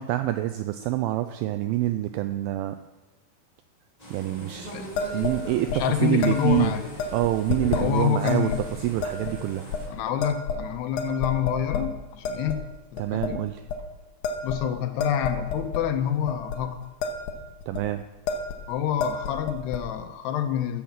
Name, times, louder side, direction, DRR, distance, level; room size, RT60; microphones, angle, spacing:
voice 1, 0.0-2.8 4.1-4.7 5.1-5.7 6.0-6.7 7.1-8.5 8.8-9.6 13.0-13.6 17.7-18.0, right 14 dB, 85° right, 9 dB, 2.1 m, -26 dB
sound 1, 4.0-9.9, left 1 dB, 10° left, 2.9 m, -39 dB
sound 2, 5.0-5.4 5.7-5.8 6.2-6.6 7.0-7.8 8.3-8.6 9.0-9.3 9.7-9.8 10.2-10.7 11.0-11.9 12.2-12.6 13.0-13.3 13.7-13.8 14.2-15.8 16.3-16.6 16.8-17.3 17.6-17.8 18.3-18.6 18.9-19.8, left 4 dB, 65° left, 2.2 m, -30 dB
voice 2, 5.7-6.8 7.7-8.7 9.9-12.6 12.9-13.4 14.4-16.8 18.7-20.8, left 9 dB, 85° left, 7 dB, 3.0 m, -27 dB
14.0 x 7.3 x 7.4 m, 1.1 s
omnidirectional pair, 4.7 m